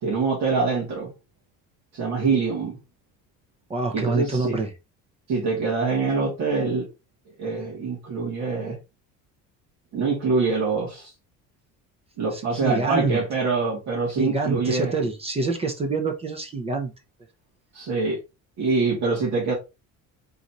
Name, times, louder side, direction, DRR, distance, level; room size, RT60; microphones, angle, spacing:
voice 1, 0.0-1.1 1.9-2.8 3.9-4.6 5.3-6.9 7.4-8.8 9.9-11.1 12.2-14.9 17.7-18.2 18.6-19.5, right 4 dB, 60° right, 2.2 m, -24 dB
voice 2, 3.7-4.7 12.3-13.2 14.2-16.9, right 3 dB, 20° right, 0.5 m, -26 dB
4.1 x 3.9 x 2.8 m
cardioid pair, 165°, 31 cm